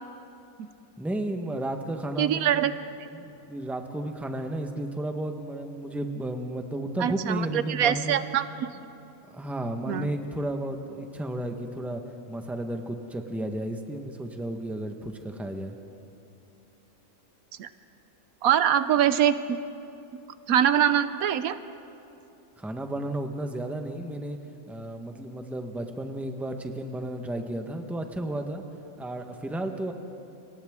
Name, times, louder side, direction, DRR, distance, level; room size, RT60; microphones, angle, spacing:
voice 1, 1.0-2.7 3.1-8.2 9.3-12.0 12.3-15.8 22.6-24.4 24.7-28.6 29.0-29.9, right 1 dB, ahead, 4 dB, 1.0 m, -33 dB
voice 2, 2.2-2.7 7.0-8.7 9.9-10.1 17.6-17.7 18.4-19.6 20.5-21.6, right 10 dB, 80° right, 12 dB, 1.1 m, -23 dB
29.5 x 24.5 x 3.7 m, 2.7 s
omnidirectional pair, 1.5 m